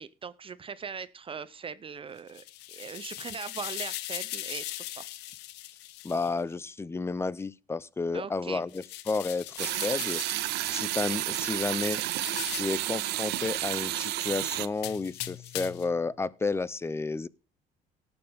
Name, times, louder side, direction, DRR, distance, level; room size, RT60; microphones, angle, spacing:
voice 1, 0.0-5.1 8.1-8.6, right 6 dB, 30° right, 0.6 m, -40 dB
sound 1, 2.2-6.3 8.7-10.5 12.0-12.8 14.7-15.9, left 15 dB, 90° left, 0.8 m, -39 dB
voice 2, 6.0-12.0 12.5-17.3, left 4 dB, 15° left, 0.5 m, -32 dB
sound 2, 9.6-14.7, right 15 dB, 80° right, 0.8 m, -31 dB
18.0 x 7.0 x 3.5 m
cardioid pair, 110°, 17 cm